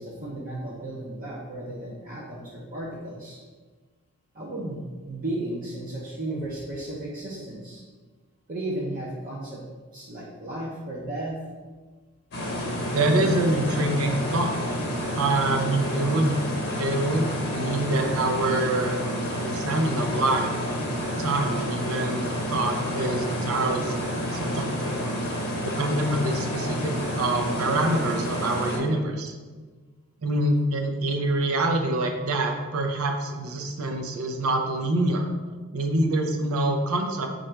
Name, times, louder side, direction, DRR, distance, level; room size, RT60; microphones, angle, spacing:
voice 1, 0.0-3.4 4.3-7.8 8.5-9.6 9.9-11.4 25.2-25.3, right 1 dB, 40° right, -5 dB, 0.6 m, -34 dB
sound 1, 12.3-28.8, equal, 50° left, 0.8 m, -29 dB
voice 2, 12.9-14.5 15.1-16.4 16.8-19.0 19.3-20.5 21.2-24.9 25.6-29.3 30.2-35.3 35.7-37.3, right 2 dB, 80° right, 4 dB, 0.6 m, -26 dB
4.4 x 2.6 x 4.3 m, 1.4 s
head